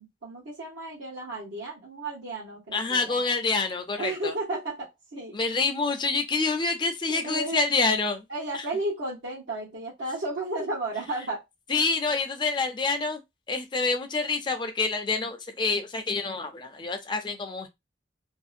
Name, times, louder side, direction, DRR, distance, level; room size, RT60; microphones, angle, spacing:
voice 1, 0.0-3.2 4.0-5.4 7.1-7.6 8.3-11.4, right 2 dB, 90° right, 0.9 m, -33 dB
voice 2, 2.7-4.3 5.3-8.2 8.5-8.6 11.7-13.2 13.5-17.7, left 3 dB, 25° left, 0.4 m, -27 dB
2.6 x 2.1 x 2.4 m
head